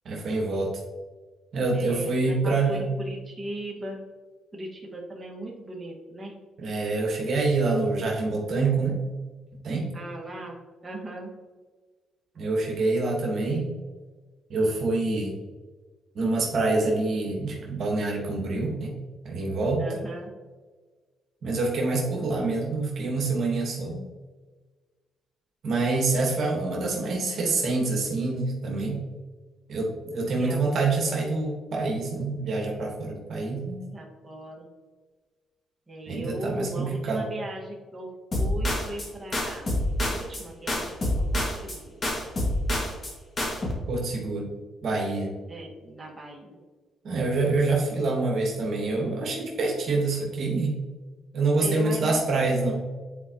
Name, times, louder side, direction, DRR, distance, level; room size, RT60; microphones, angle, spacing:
voice 1, 0.0-0.7 1.5-2.9 6.6-9.0 9.6-9.9 12.4-13.7 14.5-15.3 16.1-19.0 19.2-19.8 21.4-24.0 25.6-29.0 29.7-33.8 36.1-37.3 43.9-44.5 44.8-45.3 47.0-50.8 51.3-52.8, right 3 dB, 60° right, -1 dB, 1.4 m, -26 dB
voice 2, 1.7-4.0 4.5-6.3 9.9-10.6 10.8-11.3 19.8-20.3 30.4-30.7 33.9-34.7 35.9-38.1 38.4-39.7 40.0-40.9 41.3-42.0 45.5-46.6 51.6-52.4, right 1 dB, 20° right, -3 dB, 1.7 m, -38 dB
sound 1, 38.3-39.1 39.3-40.4 40.7-41.8 42.0-43.1 43.4-43.7, left 1 dB, 40° left, 2.0 m, -27 dB
9.6 x 4.5 x 3.0 m, 1.4 s
cardioid pair, 90°, 0 cm